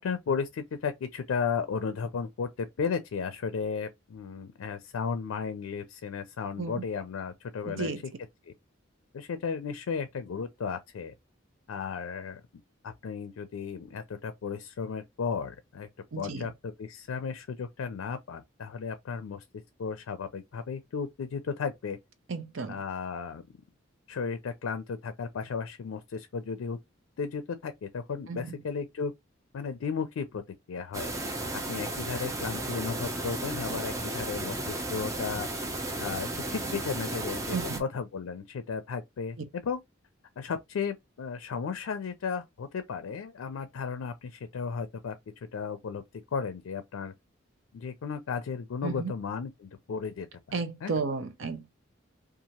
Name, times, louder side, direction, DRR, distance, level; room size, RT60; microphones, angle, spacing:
voice 1, 0.0-7.9 8.5-8.6 9.1-11.1 11.7-12.4 12.8-15.9 16.2-19.4 19.8-22.0 22.7-23.4 24.1-26.8 27.2-29.1 29.5-30.4 30.7-31.1 31.5-35.5 35.8-39.4 39.6-39.8 40.4-46.0 46.3-47.1 47.7-51.0, left 5 dB, 90° left, 0.4 m, -34 dB
voice 2, 7.6-8.0 16.1-16.5 22.3-22.8 28.3-28.6 37.5-37.8 48.8-49.1 50.5-51.7, right 4 dB, 70° right, 0.6 m, -33 dB
sound 1, 30.9-37.8, right 2 dB, 15° right, 0.5 m, -34 dB
2.8 x 2.4 x 2.8 m
head